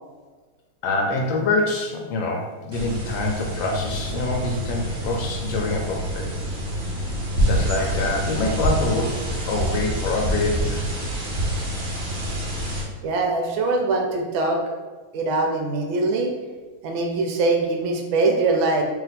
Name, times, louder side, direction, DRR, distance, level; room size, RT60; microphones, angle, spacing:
voice 1, 0.8-6.3 7.3-9.2 9.5-10.9, left 2 dB, 75° left, 1 dB, 1.3 m, -25 dB
sound 1, 2.7-12.8, equal, 50° right, 0.9 m, -27 dB
voice 2, 13.0-14.6 15.1-16.3 16.8-18.8, right 3 dB, 80° right, 2 dB, 1.4 m, -22 dB
3.4 x 2.8 x 3.9 m, 1.4 s
omnidirectional pair, 2.2 m